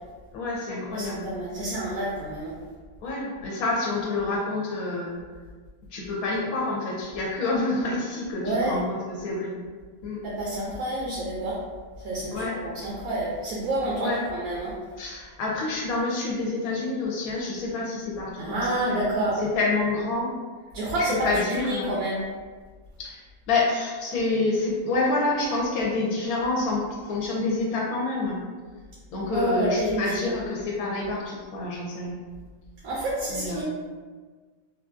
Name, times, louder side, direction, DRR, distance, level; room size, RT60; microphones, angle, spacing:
voice 1, 0.3-1.6 3.0-5.2 5.9-9.5 10.0-10.2 12.3-12.6 14.0-14.2 15.0-20.3 21.2-22.0 23.0-28.4 29.1-32.2 33.3-33.6, left 3 dB, 80° left, -3 dB, 1.1 m, -28 dB
voice 2, 0.9-2.5 8.4-8.8 10.2-11.6 12.0-14.7 18.4-19.4 20.7-22.2 29.3-30.4 32.8-33.6, right 1 dB, 80° right, -6 dB, 1.1 m, -28 dB
3.3 x 2.3 x 2.5 m, 1.5 s
omnidirectional pair, 1.5 m